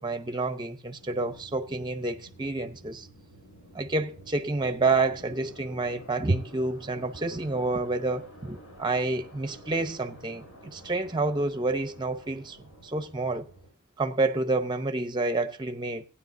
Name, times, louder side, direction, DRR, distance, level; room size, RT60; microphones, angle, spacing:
voice 1, 0.0-3.1 3.7-10.4 10.7-13.4 14.0-16.0, right 3 dB, 20° right, 0.6 m, -29 dB
sound 1, 1.0-13.7, equal, 80° left, 7.7 m, -50 dB
16.0 x 9.9 x 2.6 m
head